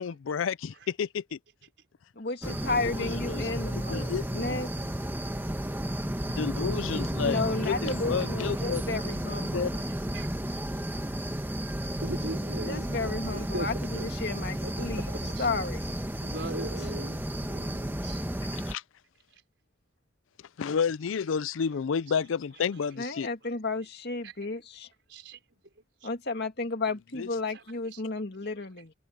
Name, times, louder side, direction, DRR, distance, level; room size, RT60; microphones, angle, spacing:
voice 1, 0.0-1.4 2.4-3.5 3.9-4.3 6.3-8.8 9.5-9.8 18.5-18.8 20.6-23.3 27.2-27.3, left 6 dB, 85° left, 0.4 m, -31 dB
voice 2, 2.2-4.7 7.2-9.7 12.7-15.1 15.4-15.9 23.0-24.9 26.0-28.9, left 3 dB, 55° left, 2.4 m, -33 dB
sound 1, 2.4-18.7, right 1 dB, 10° right, 1.3 m, -33 dB
voice 3, 9.9-10.3 12.0-14.1 14.4-15.5 15.8-15.9 16.2-18.2 22.1-22.9 24.2-24.5 25.1-25.6 26.0-26.1 27.4-28.0 28.4-28.5, right 1 dB, 65° right, 5.2 m, -41 dB
head